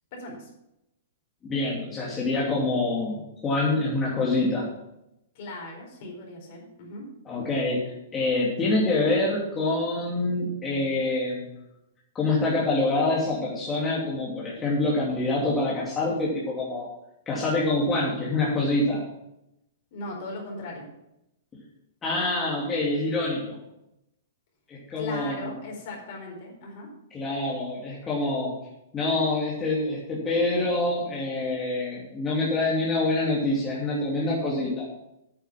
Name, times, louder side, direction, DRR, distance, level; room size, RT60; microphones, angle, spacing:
voice 1, 0.1-0.5 5.3-7.1 19.9-20.9 25.0-26.9, left 2 dB, 50° left, 0 dB, 4.6 m, -38 dB
voice 2, 1.5-4.7 7.3-7.8 8.1-11.5 12.1-16.9 17.3-19.1 22.0-23.6 24.7-25.5 27.1-28.5 28.9-34.8, left 2 dB, 20° left, -5 dB, 2.8 m, -26 dB
9.6 x 7.9 x 5.9 m, 0.86 s
figure-of-eight pair, 110°, 0 cm